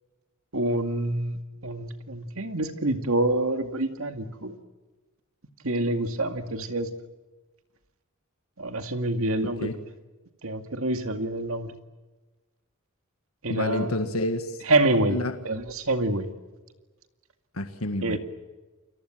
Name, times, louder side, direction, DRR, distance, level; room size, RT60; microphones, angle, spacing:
voice 1, 0.5-4.6 5.6-6.9 8.6-9.7 10.4-11.7 13.4-13.9 14.7-15.2 15.4-16.3 18.0-18.2, right 2 dB, 70° right, 7 dB, 2.3 m, -26 dB
voice 2, 13.5-14.6 15.1-15.3 17.5-18.2, left 1 dB, 75° left, 7 dB, 1.8 m, -29 dB
29.5 x 23.0 x 7.7 m, 1.2 s
head